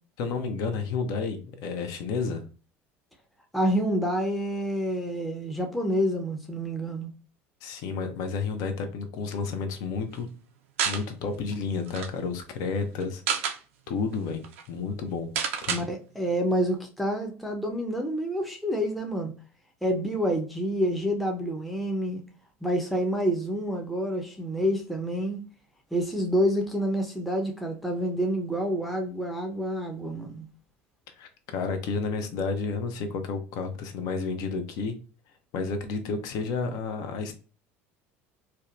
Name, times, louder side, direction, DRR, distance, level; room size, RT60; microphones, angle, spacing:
voice 1, 0.2-2.4 7.6-10.3 10.8-13.6 13.9-14.4 14.7-15.3 15.6-15.8 31.2-34.9 35.5-37.3, left 4 dB, 65° left, 0.6 m, -31 dB
voice 2, 3.5-7.1 15.7-19.3 19.8-22.2 22.6-25.4 25.9-30.5, equal, ahead, 0.5 m, -28 dB
sound 1, 10.8-11.0 11.5-11.6 11.8-12.1 13.0-13.6 14.1-14.2 14.4-14.6 15.4-15.8, right 7 dB, 85° right, 0.4 m, -28 dB
2.7 x 2.1 x 2.3 m
hypercardioid pair, 85°, 7 cm